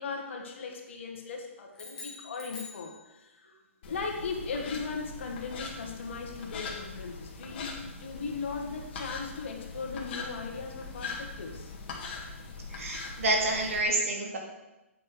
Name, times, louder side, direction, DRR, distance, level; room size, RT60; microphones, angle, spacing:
voice 1, 0.0-3.6 3.9-11.7, left 4 dB, 60° left, 2 dB, 1.8 m, -38 dB
sound 1, 1.7-3.5, left 3 dB, 10° left, 1.8 m, -45 dB
sound 2, 3.8-13.8, left 4 dB, 45° left, 1.9 m, -41 dB
voice 2, 12.7-14.4, right 2 dB, 70° right, 1 dB, 2.4 m, -28 dB
8.3 x 6.5 x 4.9 m, 1.0 s
hypercardioid pair, 140°, 8 cm